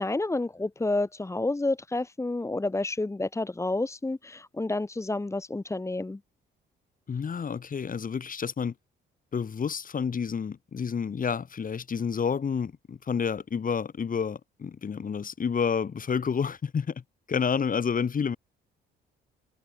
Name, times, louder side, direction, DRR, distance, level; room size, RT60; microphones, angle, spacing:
voice 1, 0.0-6.2, left 2 dB, 15° left, 1.4 m, -29 dB
voice 2, 7.1-8.7 9.3-17.0 17.3-18.4, left 6 dB, 45° left, 4.6 m, -29 dB
cardioid pair, 90°, 20 cm